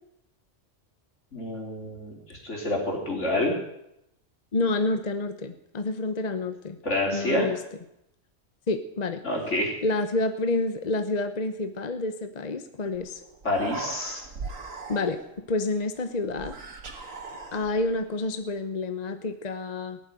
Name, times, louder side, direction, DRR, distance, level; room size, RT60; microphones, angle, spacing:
voice 1, 1.3-3.6 6.8-7.5 9.2-9.7 13.4-14.2, left 1 dB, 65° left, -1 dB, 4.1 m, -28 dB
voice 2, 4.5-6.8 7.1-7.6 8.7-9.2 9.8-13.2 14.9-15.2 15.5-16.5 17.5-20.0, left 2 dB, 35° left, 9 dB, 0.9 m, -28 dB
Human voice, 12.9-13.1 13.3-15.4 16.3-18.0, right 3 dB, 85° right, 1.9 m, -39 dB
18.0 x 7.6 x 9.3 m, 0.82 s
omnidirectional pair, 1.3 m